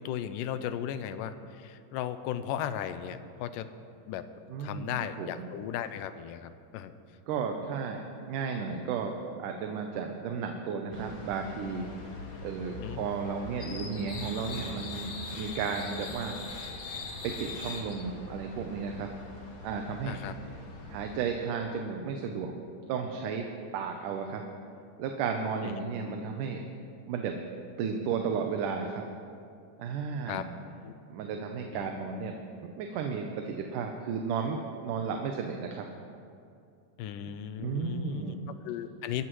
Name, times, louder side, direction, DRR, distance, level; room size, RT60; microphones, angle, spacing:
voice 1, 0.0-3.7 4.1-4.3 4.6-6.9 12.8-13.0 20.1-20.4 25.6-25.7 30.3-30.5 30.8-30.9 31.7-31.9 37.0-38.3 38.6-39.2, left 10 dB, 85° left, 11 dB, 2.2 m, -36 dB
voice 2, 4.5-4.9 5.2-5.5 7.3-9.1 9.4-11.9 12.4-16.4 17.2-19.1 19.6-20.2 20.9-22.5 22.9-23.5 23.7-24.4 25.0-26.6 27.1-27.4 27.8-29.0 29.8-30.5 31.1-35.9 37.6-38.5, right 6 dB, 80° right, 3 dB, 2.3 m, -33 dB
sound 1, 10.9-21.2, left 3 dB, 50° left, 1.0 m, -42 dB
22.5 x 14.0 x 3.1 m, 2.4 s
omnidirectional pair, 3.8 m